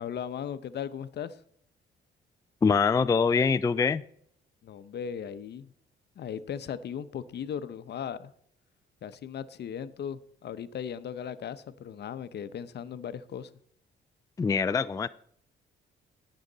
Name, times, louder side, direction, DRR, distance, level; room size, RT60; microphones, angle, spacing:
voice 1, 0.0-1.4 4.6-5.7 6.2-8.3 9.0-13.5, left 8 dB, 60° left, 13 dB, 0.8 m, -37 dB
voice 2, 2.6-4.0 14.4-15.1, left 5 dB, 15° left, 13 dB, 0.3 m, -24 dB
18.0 x 6.5 x 3.9 m, 0.65 s
cardioid pair, 90°, 20 cm